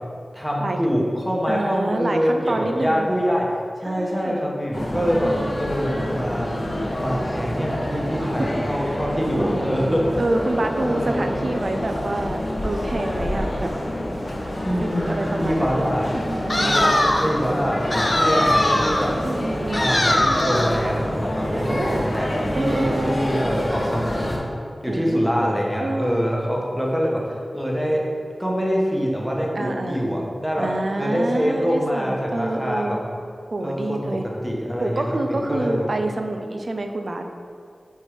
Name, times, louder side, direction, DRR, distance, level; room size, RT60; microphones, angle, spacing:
voice 1, 0.3-3.4 3.8-6.6 6.9-10.0 10.9-11.5 14.6-16.2 16.6-16.9 17.2-19.1 19.7-20.2 20.4-24.4 24.8-28.1 28.4-30.7 31.0-33.0 33.6-35.8, equal, ahead, -3 dB, 1.1 m, -25 dB
voice 2, 1.5-3.1 3.8-4.4 5.2-5.5 8.2-9.8 10.2-13.7 14.8-15.8 16.1-16.9 19.1-19.9 21.6-22.1 22.5-23.2 24.9-26.2 29.5-30.0 30.5-33.0 33.5-34.3 34.8-37.3, right 2 dB, 55° right, 5 dB, 0.5 m, -27 dB
sound 1, 4.7-24.4, left 1 dB, 50° left, 1.1 m, -27 dB
sound 2, 16.5-17.4 17.9-19.1 19.7-20.8, left 1 dB, 35° left, 0.6 m, -21 dB
4.6 x 4.4 x 5.0 m, 2.4 s
wide cardioid pair, 75°, 0 cm